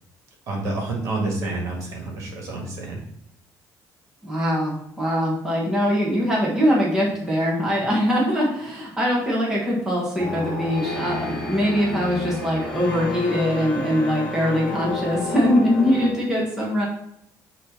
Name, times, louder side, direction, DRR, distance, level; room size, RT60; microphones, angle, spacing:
voice 1, 0.5-3.0, right 2 dB, 50° right, -1 dB, 1.7 m, -28 dB
voice 2, 4.2-16.9, equal, 10° right, -5 dB, 1.4 m, -22 dB
sound 1, 10.2-16.1, left 1 dB, 10° left, 1.5 m, -31 dB
6.4 x 3.0 x 5.2 m, 0.73 s
cardioid pair, 155°, 7 cm